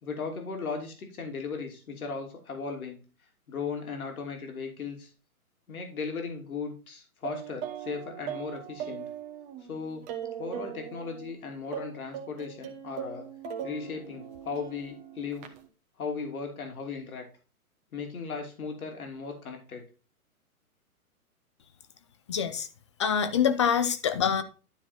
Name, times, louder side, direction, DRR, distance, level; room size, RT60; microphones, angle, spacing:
voice 1, 0.0-3.0 3.5-5.1 5.7-9.1 9.7-10.0 10.4-13.3 13.6-15.5 16.0-17.2 17.9-19.8, left 5 dB, 70° left, 2.9 m, -37 dB
sound 1, 7.2-11.3 11.7-15.7, right 9 dB, 25° right, 1.2 m, -40 dB
voice 2, 22.3-22.7 23.0-24.4, left 7 dB, 20° left, 0.4 m, -25 dB
12.0 x 4.3 x 4.3 m
hypercardioid pair, 135°, 44 cm